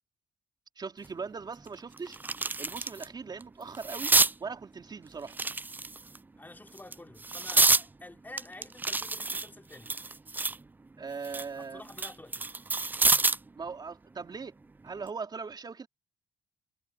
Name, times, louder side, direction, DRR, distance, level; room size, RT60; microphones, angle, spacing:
voice 1, 0.8-2.2 2.6-4.1 4.4-5.4 11.0-11.8 13.6-14.5 14.8-15.9, right 5 dB, 35° right, 3.5 m, -39 dB
sound 1, 1.0-1.1 1.6-3.1 3.4-4.3 5.3-6.2 6.8-7.9 8.4-10.6 11.0-13.5 14.9-15.1, right 3 dB, 15° right, 0.4 m, -28 dB
voice 2, 6.4-10.0 11.5-12.5, left 2 dB, 15° left, 3.3 m, -49 dB
cardioid pair, 90°, 12 cm